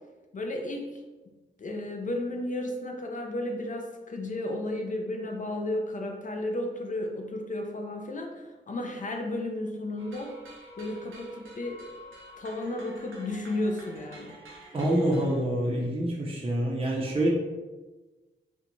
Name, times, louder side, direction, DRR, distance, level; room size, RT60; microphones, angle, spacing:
voice 1, 0.3-1.0 1.6-10.4 10.8-11.8 12.4-14.8, left 1 dB, 40° left, 2 dB, 0.4 m, -33 dB
sound 1, 10.0-15.4, right 1 dB, 90° right, 0.6 m, -48 dB
voice 2, 14.7-17.3, right 1 dB, 30° right, -3 dB, 0.6 m, -26 dB
2.5 x 2.1 x 2.9 m, 1.2 s
cardioid pair, 55°, 20 cm